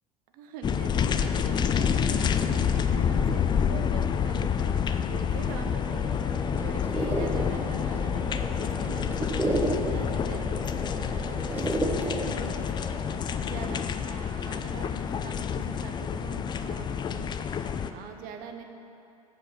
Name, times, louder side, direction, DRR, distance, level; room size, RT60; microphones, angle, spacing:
voice 1, 0.3-12.7 13.4-17.3 17.9-18.6, right 6 dB, 50° right, 5 dB, 1.0 m, -42 dB
sound 1, 0.6-17.9, left 7 dB, 25° left, 0.4 m, -28 dB
sound 2, 5.5-13.2, right 1 dB, 10° right, 1.0 m, -33 dB
sound 3, 7.0-13.5, right 2 dB, 85° right, 1.1 m, -51 dB
7.8 x 7.7 x 6.0 m, 2.7 s
figure-of-eight pair, 75°, 19 cm